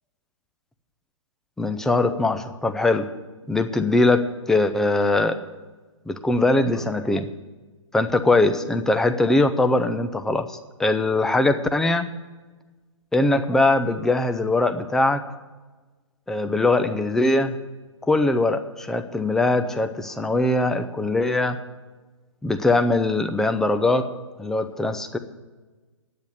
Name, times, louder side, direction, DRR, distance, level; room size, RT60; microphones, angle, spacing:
voice 1, 1.6-3.1 3.5-5.4 6.1-7.3 7.9-12.1 13.1-15.2 16.3-17.5 18.1-21.6 22.4-24.1 24.4-25.2, left 2 dB, 5° left, 8 dB, 0.5 m, -21 dB
10.5 x 9.2 x 8.1 m, 1.2 s
figure-of-eight pair, 125°, 17 cm